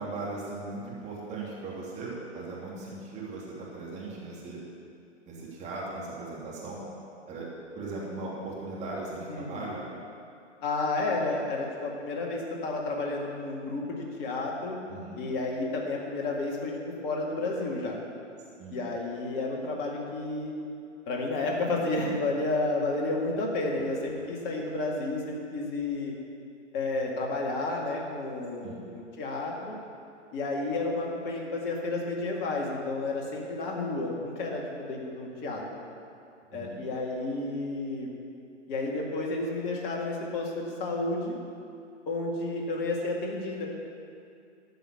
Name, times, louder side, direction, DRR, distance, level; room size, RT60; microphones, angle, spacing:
voice 1, 0.0-4.6 5.3-6.8 7.3-7.5 7.7-9.8 14.9-15.2 18.6-18.8 23.8-24.2 28.6-28.8 36.5-36.8, right 3 dB, 20° right, -5 dB, 3.0 m, -38 dB
voice 2, 9.3-9.7 10.6-14.8 15.1-16.7 17.0-18.0 18.7-20.5 21.1-26.2 26.7-29.7 30.3-35.8 36.5-38.1 38.7-41.3 42.1-43.7, left 2 dB, 25° left, -2 dB, 2.1 m, -31 dB
14.0 x 5.7 x 8.7 m, 2.5 s
hypercardioid pair, 130°, 37 cm